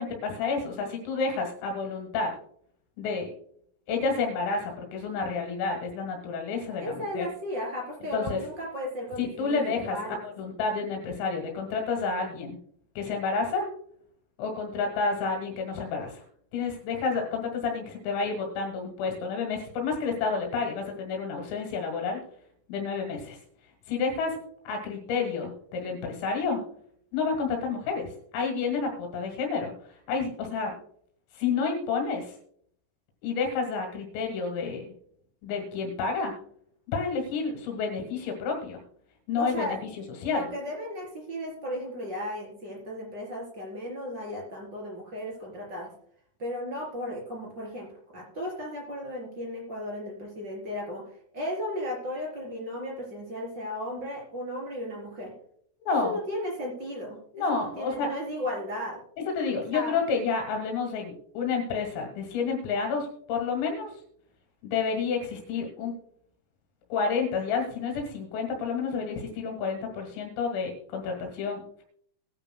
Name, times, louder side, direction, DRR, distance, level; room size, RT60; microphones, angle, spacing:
voice 1, 0.0-2.3 3.0-3.3 3.9-7.3 8.1-8.4 9.2-12.6 13.0-13.7 14.4-16.2 16.5-22.2 22.7-23.4 23.9-24.4 24.7-26.6 27.1-30.7 31.3-32.3 33.2-34.9 35.4-36.3 36.9-38.8 39.3-40.5 55.9-56.2 57.3-58.1 59.2-63.9 64.6-65.9 66.9-71.8, left 4 dB, 85° left, 2 dB, 4.3 m, -30 dB
voice 2, 6.8-10.2 39.4-39.8 40.2-45.9 46.4-47.9 48.1-51.0 51.3-55.3 56.0-57.2 57.5-59.0 59.7-60.0, left 1 dB, 25° right, -1 dB, 3.7 m, -35 dB
20.0 x 10.0 x 2.2 m, 0.64 s
omnidirectional pair, 5.8 m